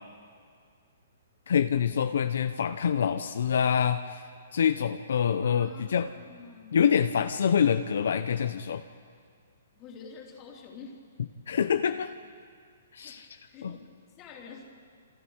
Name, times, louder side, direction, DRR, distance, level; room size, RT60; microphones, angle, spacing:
voice 1, 1.5-4.2 4.5-6.1 6.7-8.8 11.5-12.1 12.9-13.3 13.6-13.8, left 7 dB, 65° left, 9 dB, 0.8 m, -26 dB
voice 2, 5.4-6.9 9.7-11.0 13.0-13.9 14.2-14.6, left 5 dB, 20° left, -1 dB, 3.1 m, -48 dB
28.0 x 28.0 x 4.7 m, 2.1 s
hypercardioid pair, 180°, 0 cm